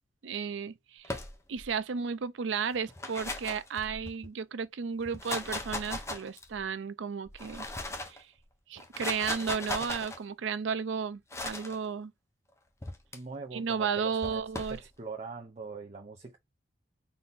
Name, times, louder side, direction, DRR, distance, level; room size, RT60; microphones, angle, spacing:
voice 1, 0.2-1.2 1.5-7.7 8.0-8.3 8.7-12.1 13.5-14.8, right 6 dB, 80° right, 0.5 m, -33 dB
sound 1, 1.0-1.7 2.8-4.3 5.0-6.6 7.3-8.2 8.8-10.2 11.3-11.8 12.8-13.2 14.2-14.8, left 2 dB, 15° left, 0.7 m, -38 dB
voice 2, 13.1-14.4 14.7-16.4, right 4 dB, 35° right, 0.7 m, -42 dB
4.1 x 2.8 x 3.5 m
head